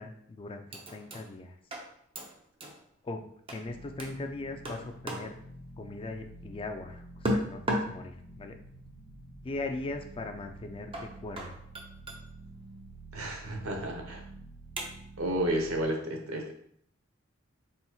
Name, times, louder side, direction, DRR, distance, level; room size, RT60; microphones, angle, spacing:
voice 1, 0.0-1.6 3.0-3.2 3.5-5.3 5.8-8.6 9.4-11.6, left 2 dB, 25° left, 5 dB, 0.3 m, -39 dB
sound 1, 0.7-1.3 1.7-2.8 3.5-3.7 4.0-4.2 4.7-5.4 7.2-8.0 9.9-10.0 10.9-12.2 14.8-15.2, equal, 25° right, 0.6 m, -35 dB
sound 2, 3.7-15.8, right 2 dB, 65° left, 0.9 m, -49 dB
voice 2, 13.1-14.2 15.2-16.5, right 1 dB, 90° right, 2 dB, 0.8 m, -31 dB
4.2 x 4.0 x 2.3 m, 0.66 s
head